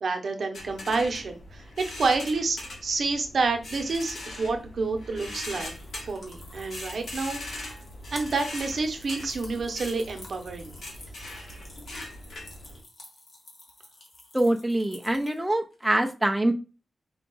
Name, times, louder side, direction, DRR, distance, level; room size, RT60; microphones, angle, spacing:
voice 1, 0.0-5.7 6.0-7.7 8.1-10.8, right 3 dB, 55° right, 5 dB, 0.7 m, -29 dB
sound 1, 0.5-12.8, left 1 dB, 75° left, 1.5 m, -41 dB
sound 2, 4.3-15.8, left 1 dB, 35° left, 1.3 m, -50 dB
voice 2, 14.3-16.5, right 1 dB, 5° right, 3 dB, 0.3 m, -24 dB
4.6 x 2.3 x 3.8 m, 0.32 s
wide cardioid pair, 170°, 0 cm